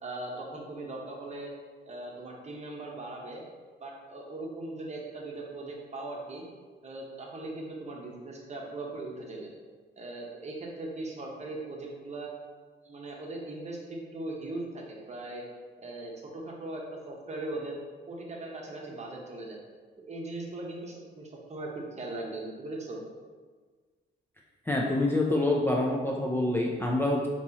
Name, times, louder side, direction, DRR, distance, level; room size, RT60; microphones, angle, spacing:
voice 1, 0.0-1.5 1.9-3.4 3.8-6.4 6.8-9.5 10.0-12.3 12.8-15.4 15.8-17.8 18.1-19.6 20.1-23.0, right 2 dB, 35° right, -1 dB, 1.0 m, -39 dB
voice 2, 24.7-27.3, left 2 dB, 10° left, -2 dB, 0.5 m, -26 dB
5.2 x 3.0 x 2.9 m, 1.5 s
cardioid pair, 90°, 20 cm